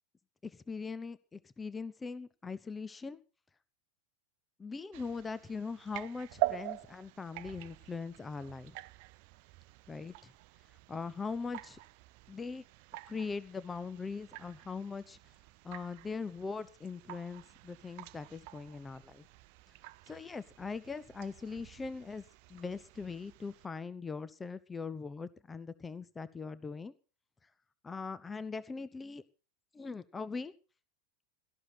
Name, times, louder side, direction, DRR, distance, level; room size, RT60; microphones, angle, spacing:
voice 1, 0.4-3.2 4.6-8.8 9.9-10.3 10.9-11.8 12.3-12.6 13.1-15.2 15.6-19.3 20.1-22.2 22.5-26.9 27.8-29.2 29.7-30.5, left 4 dB, 15° left, 16 dB, 0.9 m, -41 dB
sound 1, 4.9-23.7, right 17 dB, 45° right, 0.7 m, -45 dB
17.5 x 14.0 x 4.2 m, 0.36 s
figure-of-eight pair, 90°, 0 cm